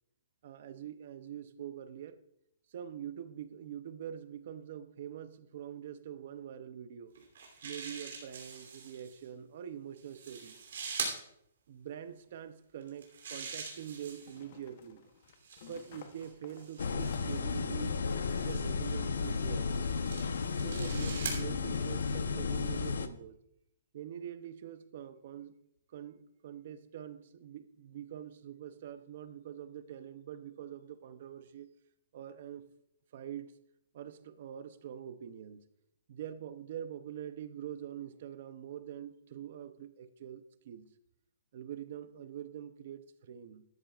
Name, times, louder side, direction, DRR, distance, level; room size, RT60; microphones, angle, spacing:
voice 1, 0.4-2.2 2.7-7.1 7.6-10.6 11.7-15.0 15.6-18.0 18.4-19.7 20.6-23.4 23.9-25.6 25.9-31.7 32.1-32.7 33.1-33.5 33.9-35.6 36.1-40.9 41.5-43.6, right 9 dB, 40° right, 12 dB, 0.6 m, -44 dB
sound 1, 7.1-9.1 10.0-11.2 12.8-14.4 15.3-17.4 18.3-18.6 19.4-21.4, right 5 dB, 55° right, 2.9 m, -43 dB
sound 2, 12.2-12.3 14.2-17.6, left 7 dB, 35° left, 0.8 m, -54 dB
sound 3, 16.8-23.1, left 5 dB, 80° left, 0.8 m, -33 dB
13.0 x 11.5 x 2.4 m, 0.75 s
hypercardioid pair, 175°, 0 cm